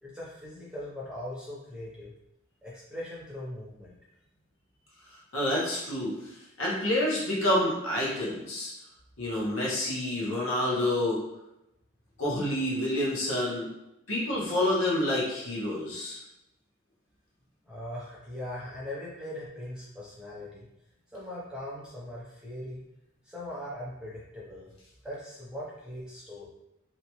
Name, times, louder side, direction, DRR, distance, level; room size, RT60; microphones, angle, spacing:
voice 1, 0.0-2.1 2.6-3.9 17.6-20.7 21.1-22.8 23.2-24.7 25.0-26.5, left 1 dB, 5° right, -7 dB, 0.7 m, -40 dB
voice 2, 5.3-6.1 6.6-8.7 9.2-11.2 12.2-13.7 14.1-16.2, left 1 dB, 75° left, -5 dB, 0.9 m, -28 dB
2.8 x 2.3 x 2.9 m, 0.89 s
head